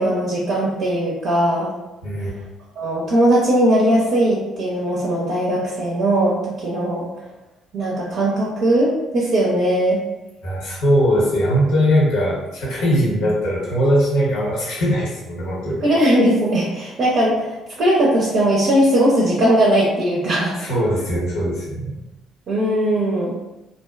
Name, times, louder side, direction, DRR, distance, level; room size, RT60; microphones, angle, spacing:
voice 1, 0.0-1.7 2.8-7.0 7.7-10.0 13.0-13.2 15.8-20.6 22.5-23.3, right 1 dB, 55° right, -5 dB, 0.5 m, -19 dB
voice 2, 2.0-2.3 10.4-15.8 20.6-22.0, equal, 65° left, -5 dB, 0.8 m, -20 dB
2.5 x 2.1 x 2.3 m, 0.99 s
figure-of-eight pair, 50°, 0 cm